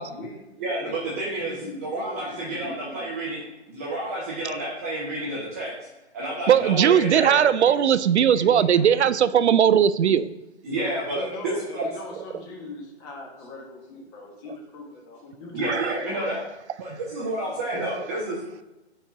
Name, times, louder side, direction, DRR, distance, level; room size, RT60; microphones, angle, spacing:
voice 1, 0.0-0.4 0.8-3.1 7.6-7.8 8.3-8.9 10.7-15.7 16.0-16.5 17.7-17.9, left 2 dB, 20° left, 0 dB, 1.1 m, -40 dB
voice 2, 0.6-5.7 6.1-7.4 10.6-11.9 15.5-16.4 16.8-18.4, right 1 dB, 15° right, -5 dB, 0.5 m, -30 dB
voice 3, 6.5-10.3 15.7-15.9, right 9 dB, 80° right, 14 dB, 0.5 m, -19 dB
4.5 x 4.3 x 4.9 m, 1.0 s
hypercardioid pair, 150°, 34 cm